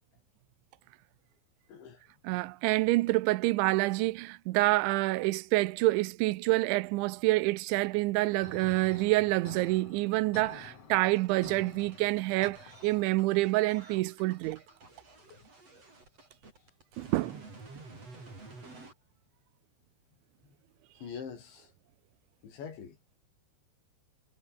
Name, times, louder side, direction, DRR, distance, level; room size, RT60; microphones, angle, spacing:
voice 1, 1.7-2.0 15.3-15.4 18.4-18.6 20.4-20.6 21.0-21.7 22.4-23.0, left 6 dB, 70° left, 7.1 m, -44 dB
voice 2, 2.2-14.6 17.0-17.4, right 20 dB, 80° right, 3.0 m, -27 dB
sound 1, 8.4-13.4, left 5 dB, 35° left, 3.8 m, -50 dB
sound 2, 10.9-18.9, right 3 dB, 30° right, 8.5 m, -51 dB
omnidirectional pair, 5.5 m